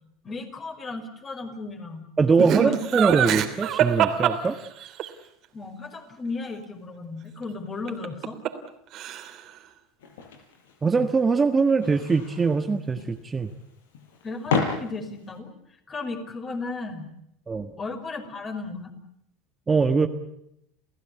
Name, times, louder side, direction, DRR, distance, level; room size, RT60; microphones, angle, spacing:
voice 1, 0.2-2.1 2.4-2.8 5.5-8.4 14.2-15.5 15.9-17.1 17.8-18.9, left 3 dB, 30° left, 6 dB, 5.7 m, -35 dB
voice 2, 2.2-4.6 10.8-13.5 17.5-17.7 19.7-20.1, right 4 dB, 20° right, 7 dB, 1.5 m, -22 dB
Laughter, 2.4-5.1 7.9-8.7 8.9-9.5, right 10 dB, 50° right, 3.1 m, -24 dB
sound 1, 10.0-15.4, left 5 dB, 85° left, 4.8 m, -33 dB
29.5 x 16.5 x 9.5 m, 0.79 s
hypercardioid pair, 95°, 0 cm